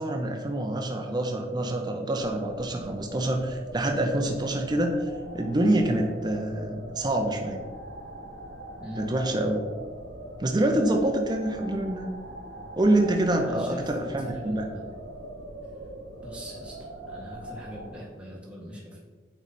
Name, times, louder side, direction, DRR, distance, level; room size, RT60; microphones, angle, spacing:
voice 1, 0.0-7.6 9.0-9.7 10.4-12.1 12.8-14.7, right 1 dB, 25° right, 3 dB, 0.5 m, -26 dB
sound 1, 2.2-17.9, right 1 dB, 65° right, 1.0 m, -42 dB
voice 2, 13.4-14.9 16.2-16.8 17.1-19.0, equal, 5° right, -5 dB, 1.6 m, -40 dB
8.8 x 3.2 x 4.1 m, 1.4 s
head